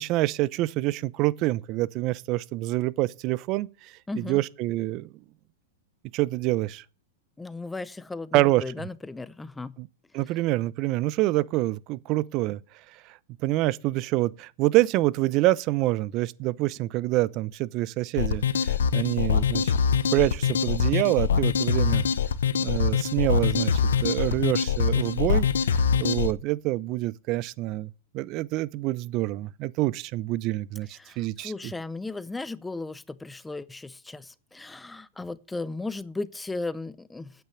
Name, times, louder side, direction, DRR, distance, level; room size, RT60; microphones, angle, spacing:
voice 1, 0.0-5.1 6.1-6.8 8.3-8.9 9.8-9.9 10.1-12.6 13.4-19.7 20.1-22.0 22.6-25.5 25.7-31.7, right 18 dB, 45° right, 0.6 m, -26 dB
voice 2, 4.1-4.4 7.4-9.7 31.0-37.3, left 3 dB, 10° left, 0.6 m, -36 dB
sound 1, 18.2-26.3, left 7 dB, 80° left, 0.9 m, -24 dB
9.2 x 8.4 x 8.1 m
hypercardioid pair, 115°, 0 cm